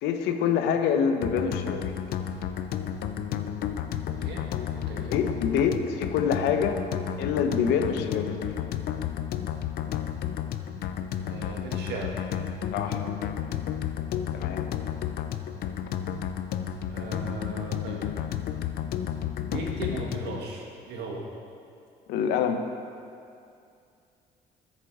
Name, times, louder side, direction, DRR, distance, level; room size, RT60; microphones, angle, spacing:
voice 1, 0.0-1.9 5.1-6.8 7.2-8.4 12.7-13.1 14.3-14.7 15.9-16.0 22.1-22.6, left 7 dB, 90° left, 7 dB, 0.8 m, -26 dB
sound 1, 1.2-20.4, left 9 dB, 65° left, 0.6 m, -32 dB
voice 2, 4.7-5.2 11.3-12.2 16.9-18.0 19.4-21.3, right 2 dB, 75° right, -1 dB, 1.9 m, -37 dB
13.5 x 6.7 x 4.8 m, 2.4 s
cardioid pair, 110°, 17 cm